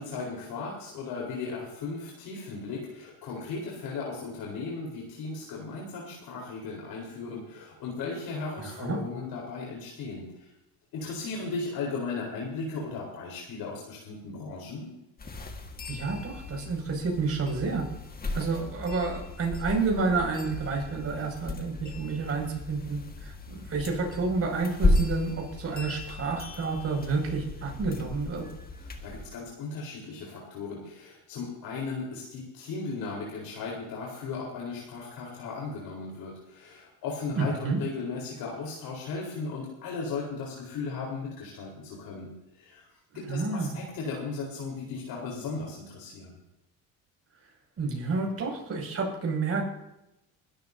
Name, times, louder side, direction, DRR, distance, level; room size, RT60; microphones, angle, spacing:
voice 1, 0.0-10.5 10.9-14.9 28.8-42.9 43.1-46.4, left 4 dB, 70° left, -3 dB, 4.3 m, -36 dB
voice 2, 8.6-9.0 15.9-17.8 18.3-28.4 37.3-37.8 43.3-43.8 47.8-49.6, right 4 dB, 40° right, 0 dB, 6.3 m, -30 dB
sound 1, 15.2-29.3, left 2 dB, 25° left, 1.8 m, -34 dB
22.0 x 13.5 x 2.8 m, 0.88 s
cardioid pair, 115°, 37 cm